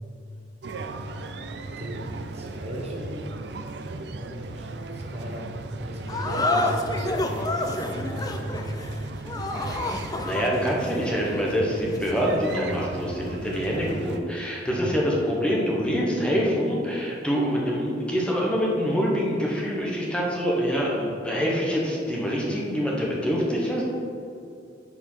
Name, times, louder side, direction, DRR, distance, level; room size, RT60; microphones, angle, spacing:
sound 1, 0.6-14.2, right 2 dB, 65° right, 0.5 m, -36 dB
voice 1, 1.8-3.2 4.1-4.7 4.9-5.5 5.8-8.8 14.7-14.9, equal, 35° right, -1 dB, 1.1 m, -35 dB
sound 2, 6.1-12.8, left 2 dB, 20° left, 0.5 m, -30 dB
voice 2, 10.2-23.8, equal, 5° left, -4 dB, 1.1 m, -25 dB
6.6 x 5.1 x 5.5 m, 2.5 s
head